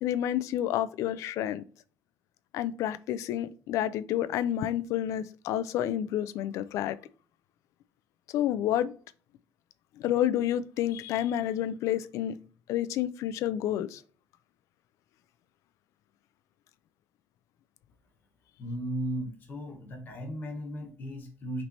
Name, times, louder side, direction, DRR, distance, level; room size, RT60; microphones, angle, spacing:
voice 1, 0.0-1.6 2.5-7.0 8.3-8.9 10.0-12.4 12.7-14.0, left 11 dB, 75° left, 0.4 m, -29 dB
voice 2, 18.6-21.6, equal, 40° left, 1.1 m, -36 dB
5.9 x 3.3 x 2.7 m
cardioid pair, 160°, 5 cm